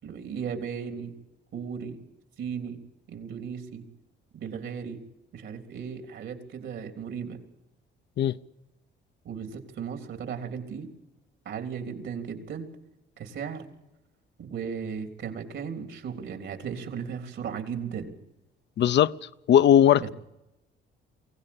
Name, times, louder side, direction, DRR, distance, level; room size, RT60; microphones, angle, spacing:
voice 1, 0.0-1.2 1.5-2.0 2.4-2.8 3.1-3.9 4.3-5.0 5.3-7.4 9.3-10.9 11.5-12.7 13.2-13.7 14.4-18.2 20.0-20.1, right 7 dB, 70° right, 3.5 m, -36 dB
voice 2, 18.8-19.2 19.5-20.1, left 10 dB, 60° left, 0.7 m, -18 dB
23.5 x 16.5 x 8.7 m
cardioid pair, 90°, 20 cm